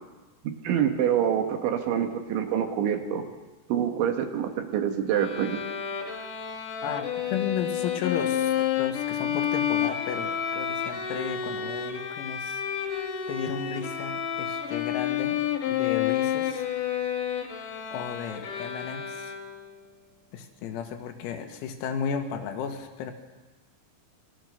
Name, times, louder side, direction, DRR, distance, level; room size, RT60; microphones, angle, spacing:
voice 1, 0.6-3.3 3.7-5.6, right 9 dB, 70° right, 6 dB, 3.8 m, -26 dB
Bowed string instrument, 5.1-19.8, left 9 dB, 55° left, 2.8 m, -30 dB
voice 2, 6.8-15.4 15.7-16.7 17.9-19.3 20.3-23.1, left 7 dB, 90° left, 5 dB, 4.7 m, -34 dB
27.0 x 22.0 x 6.6 m, 1.2 s
omnidirectional pair, 6.0 m